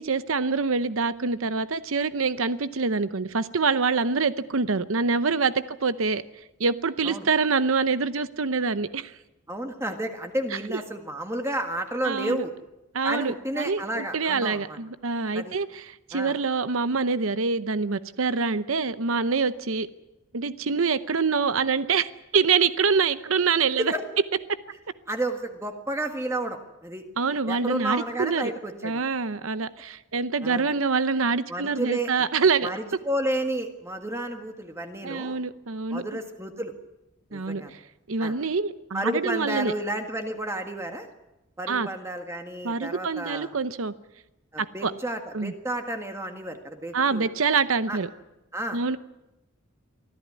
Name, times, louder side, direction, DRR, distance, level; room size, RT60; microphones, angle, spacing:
voice 1, 0.0-6.2 6.6-9.2 12.0-12.4 12.9-19.9 20.3-23.9 27.2-28.5 28.8-32.7 35.0-36.2 37.3-37.8 38.1-39.7 41.7-41.9 42.6-43.9 44.6-44.9 45.3-45.5 46.9-48.1 48.7-49.0, right 4 dB, 70° right, 13 dB, 0.8 m, -25 dB
voice 2, 9.5-12.5 13.0-14.8 15.3-15.5 16.1-16.3 23.8-24.0 25.1-27.0 27.5-29.0 30.4-30.7 31.5-32.1 32.6-35.4 35.9-36.7 37.3-37.7 38.2-38.3 38.9-41.1 41.6-43.5 44.5-47.3 47.9-48.0 48.5-48.8, right 1 dB, 15° right, 5 dB, 1.7 m, -31 dB
24.5 x 14.5 x 9.7 m, 0.96 s
head